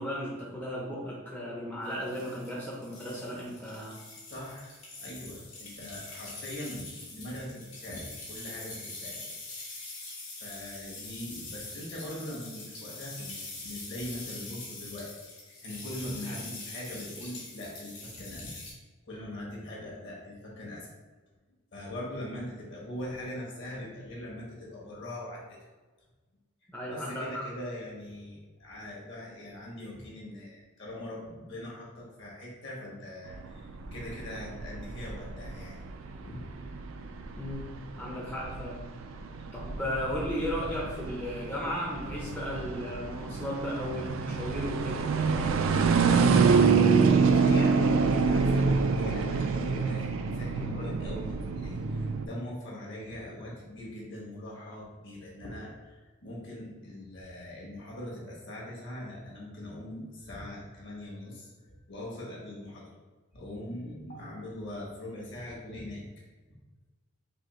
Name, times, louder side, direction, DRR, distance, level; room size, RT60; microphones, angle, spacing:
voice 1, 0.0-4.0 26.7-27.4 37.4-37.7 38.0-38.8 39.5-45.0, equal, 10° left, -5 dB, 0.5 m, -35 dB
sound 1, 1.9-18.7, left 2 dB, 80° left, 1.5 m, -44 dB
voice 2, 4.3-9.2 10.4-18.6 19.0-20.9 21.7-25.4 26.6-35.8 36.2-36.5 47.0-62.9 63.3-66.2, left 1 dB, 55° left, -4 dB, 1.2 m, -41 dB
sound 2, 33.3-52.3, right 5 dB, 60° right, 0.3 m, -27 dB
4.1 x 2.8 x 3.0 m, 1.3 s
head